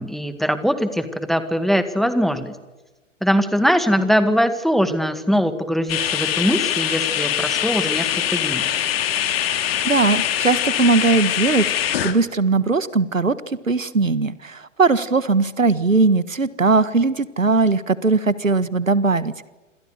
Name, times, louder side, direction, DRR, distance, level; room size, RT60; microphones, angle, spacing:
voice 1, 0.0-2.6 3.2-8.6, equal, ahead, 11 dB, 1.9 m, -21 dB
sound 1, 5.9-12.1, left 10 dB, 50° left, 3.3 m, -23 dB
voice 2, 9.8-19.5, right 3 dB, 85° right, 16 dB, 1.6 m, -19 dB
27.5 x 27.0 x 6.8 m, 1.1 s
figure-of-eight pair, 115°, 38 cm